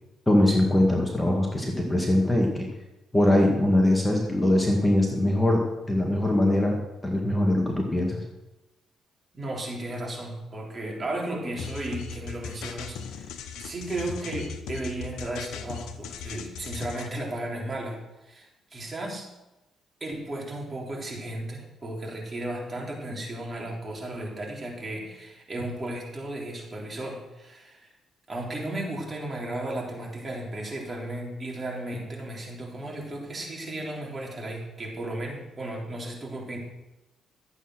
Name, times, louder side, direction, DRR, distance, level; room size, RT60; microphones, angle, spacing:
voice 1, 0.3-2.7 3.1-8.2, left 1 dB, 10° left, 0 dB, 2.0 m, -22 dB
voice 2, 9.3-19.3 20.0-27.9 28.3-36.6, right 1 dB, 30° right, -1 dB, 3.7 m, -35 dB
sound 1, 11.6-17.1, left 6 dB, 85° left, 1.1 m, -38 dB
12.5 x 8.4 x 6.3 m, 1.0 s
cardioid pair, 90°, 0 cm